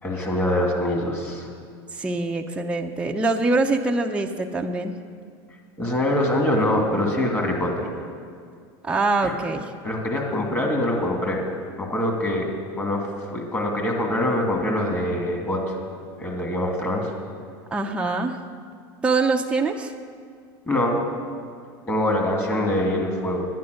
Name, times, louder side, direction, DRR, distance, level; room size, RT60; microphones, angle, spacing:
voice 1, 0.0-1.5 5.8-7.9 9.2-9.3 9.8-11.4 11.8-12.5 12.7-15.8 16.2-17.1 20.7-21.1 21.9-23.4, left 1 dB, 20° left, 0 dB, 2.5 m, -24 dB
voice 2, 2.0-4.9 8.8-9.6 17.7-18.4 19.0-19.9, right 3 dB, 10° right, 1 dB, 0.7 m, -24 dB
10.5 x 9.3 x 6.5 m, 2.2 s
hypercardioid pair, 105°, 13 cm